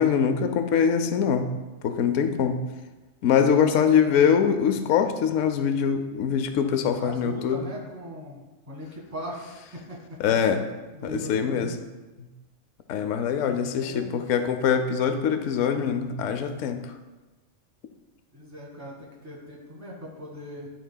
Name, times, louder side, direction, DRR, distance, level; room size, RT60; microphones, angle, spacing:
voice 1, 0.0-1.5 1.8-2.6 3.2-7.7 10.2-10.7 11.0-11.7 12.2-12.3 12.9-16.8, left 7 dB, 75° left, 7 dB, 0.9 m, -23 dB
voice 2, 3.6-4.2 7.0-10.2 10.9-11.7 13.3-14.3 18.3-20.7, equal, 15° right, -4 dB, 1.4 m, -40 dB
12.0 x 4.2 x 2.2 m, 1.2 s
omnidirectional pair, 1.3 m